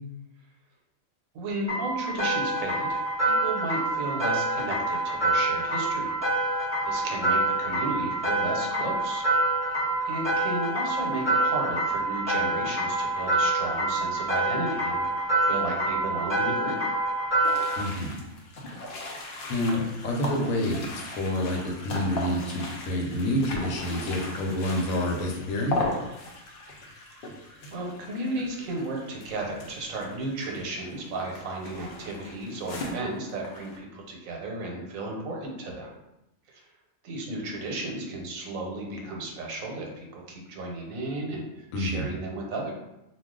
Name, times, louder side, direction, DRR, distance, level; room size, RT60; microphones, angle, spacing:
voice 1, 1.3-6.1 6.4-9.2 10.1-17.0 27.7-35.9 36.5-36.6 37.0-42.7, right 2 dB, 90° right, 0 dB, 1.1 m, -34 dB
sound 1, 1.7-17.8, right 2 dB, 5° right, 1.0 m, -26 dB
sound 2, 17.4-33.8, left 2 dB, 60° left, 0.6 m, -38 dB
voice 2, 17.8-18.2 19.5-25.8 41.7-42.1, left 1 dB, 80° left, 0 dB, 1.0 m, -28 dB
2.3 x 2.3 x 3.6 m, 0.90 s
omnidirectional pair, 1.4 m